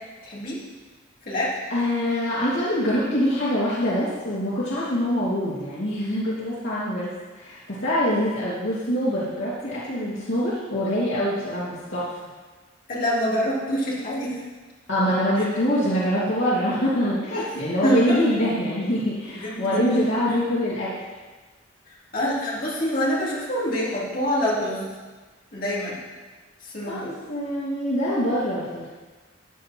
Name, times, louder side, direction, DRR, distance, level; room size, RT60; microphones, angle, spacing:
voice 1, 0.2-0.6 1.3-1.5 12.9-14.4 17.3-17.5 17.8-18.2 19.2-20.1 22.1-24.9 25.5-26.0 26.6-27.1, equal, 45° left, -7 dB, 3.7 m, -26 dB
voice 2, 1.7-12.1 14.9-21.0 26.9-28.9, equal, 75° left, -9 dB, 2.9 m, -24 dB
14.5 x 9.4 x 4.7 m, 1.3 s
head